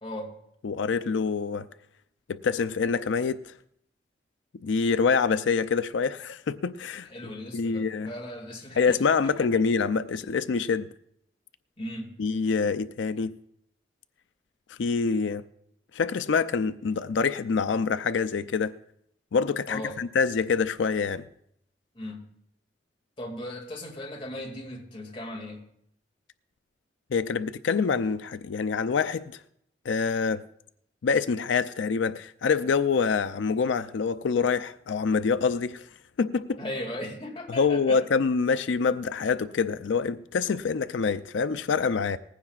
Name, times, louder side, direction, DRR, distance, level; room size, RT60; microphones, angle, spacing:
voice 1, 0.0-0.4 7.1-9.5 11.8-12.1 19.7-20.0 21.9-22.2 23.2-25.7 36.6-38.0, left 1 dB, 30° left, 2.2 m, -37 dB
voice 2, 0.6-1.7 2.3-3.5 4.6-7.1 7.5-8.1 8.8-10.9 12.2-13.3 14.7-15.4 15.9-18.7 19.3-21.2 27.1-29.3 29.9-30.4 31.0-35.8 36.2-36.6 37.5-42.2, left 5 dB, 90° left, 0.4 m, -26 dB
19.5 x 15.5 x 2.4 m
head